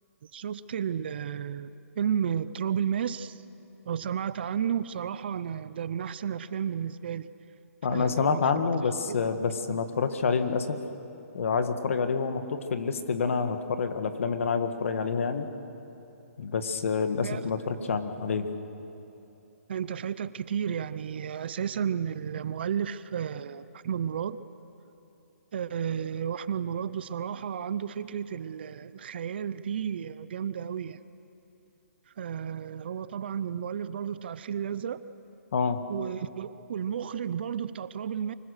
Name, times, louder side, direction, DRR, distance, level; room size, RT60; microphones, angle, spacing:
voice 1, 0.3-3.4 3.9-7.3 7.9-8.5 9.1-9.2 9.7-9.8 17.2-17.4 17.8-18.0 19.7-24.4 25.5-31.0 32.2-35.0 35.9-38.3, right 8 dB, 40° right, 15 dB, 0.6 m, -32 dB
voice 2, 7.8-10.8 11.3-15.5 16.4-18.5 35.5-35.8, left 5 dB, 55° left, 9 dB, 1.6 m, -28 dB
24.5 x 21.5 x 6.6 m, 3.0 s
hypercardioid pair, 165°, 8 cm